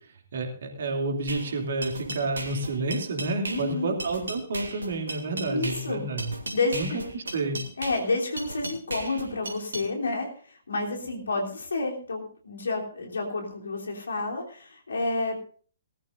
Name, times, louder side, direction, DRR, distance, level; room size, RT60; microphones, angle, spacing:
voice 1, 0.3-6.3 6.7-6.9 7.1-7.6, right 2 dB, 55° right, 2 dB, 2.8 m, -30 dB
sound 1, 1.3-9.9, right 2 dB, 70° right, 2.7 m, -37 dB
voice 2, 3.5-4.0 5.4-6.1 6.5-7.0 7.8-15.4, left 3 dB, 65° left, 1 dB, 3.3 m, -30 dB
20.0 x 13.5 x 2.6 m, 0.43 s
figure-of-eight pair, 125°, 0 cm